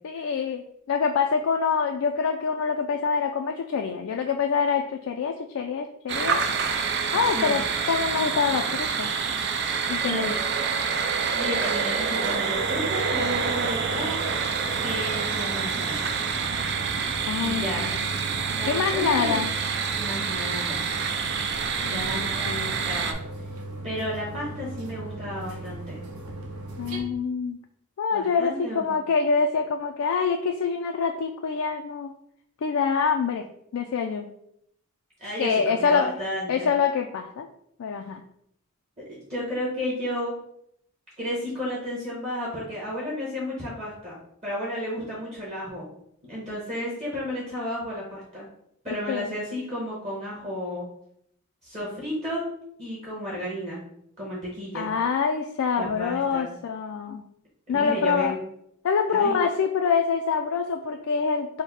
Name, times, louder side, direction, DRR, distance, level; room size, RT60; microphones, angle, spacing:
voice 1, 0.0-6.4 7.1-7.6 7.9-9.1 9.9-10.3 17.3-18.1 18.7-19.5 21.8-22.7 26.8-27.6 28.0-32.1 32.6-33.5 33.7-34.3 35.4-36.1 36.5-37.5 37.8-38.2 49.1-49.3 54.7-57.3 57.7-58.3 58.8-61.6, left 5 dB, 70° left, 3 dB, 0.3 m, -25 dB
sound 1, 6.1-23.1, right 5 dB, 50° right, 0.4 m, -27 dB
voice 2, 10.0-10.3 11.3-14.2 14.8-16.1 17.4-17.8 18.5-19.4 19.9-20.8 21.8-23.2 23.8-26.0 28.1-29.1 35.2-36.7 39.1-40.3 41.2-45.8 46.2-48.5 48.8-50.9 51.6-52.5 52.8-53.8 54.2-54.9 55.8-56.5 57.7-58.4 59.1-59.4, equal, 30° right, -6 dB, 1.2 m, -32 dB
sound 2, 12.5-27.0, right 2 dB, 85° right, 0.8 m, -38 dB
4.7 x 2.1 x 4.1 m, 0.72 s
head